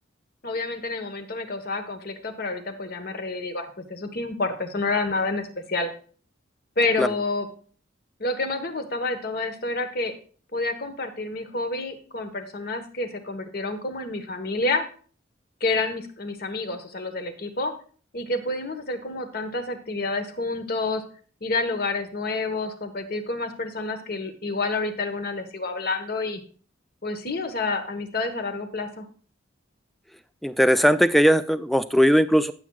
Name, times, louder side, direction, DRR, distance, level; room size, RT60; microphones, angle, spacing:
voice 1, 0.4-5.9 6.8-7.5 8.2-10.1 10.5-14.8 15.6-17.7 18.1-21.0 21.4-26.4 27.0-29.0, left 3 dB, 50° left, 7 dB, 1.2 m, -29 dB
voice 2, 30.4-32.5, equal, ahead, 12 dB, 0.4 m, -19 dB
15.5 x 7.4 x 2.4 m, 0.42 s
head